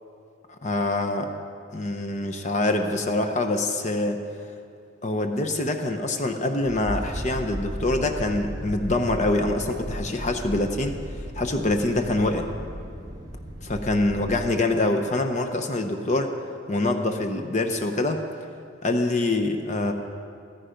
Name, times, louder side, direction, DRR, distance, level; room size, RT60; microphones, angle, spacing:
voice 1, 0.5-1.3 1.7-4.2 5.0-10.9 11.3-12.5 13.6-16.3 16.7-18.2 18.8-19.9, left 2 dB, 35° left, 6 dB, 0.8 m, -25 dB
sound 1, 6.6-14.5, equal, 15° right, 1.3 m, -35 dB
15.0 x 14.5 x 5.2 m, 2.4 s
head